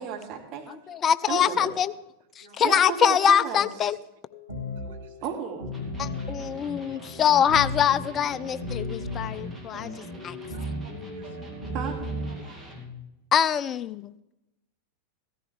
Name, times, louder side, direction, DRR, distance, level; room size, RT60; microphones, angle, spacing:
voice 1, 0.0-0.7 1.3-1.7 2.6-3.7 5.2-5.7 11.7-12.0, right 7 dB, 40° right, 1 dB, 2.4 m, -33 dB
voice 2, 0.7-1.9 2.4-4.0 6.0-9.9 10.2-10.4 13.3-14.1, left 8 dB, 25° left, 17 dB, 0.4 m, -24 dB
sound 1, 4.3-12.4, left 1 dB, 85° right, 3.1 m, -36 dB
voice 3, 4.8-5.1 6.9-7.0 10.5-11.5 12.4-12.7, right 7 dB, 55° right, 5 dB, 1.3 m, -54 dB
Electric guitar, 5.7-13.0, left 1 dB, 5° right, 2.4 m, -42 dB
15.5 x 14.0 x 3.4 m, 0.90 s
figure-of-eight pair, 90°, 0 cm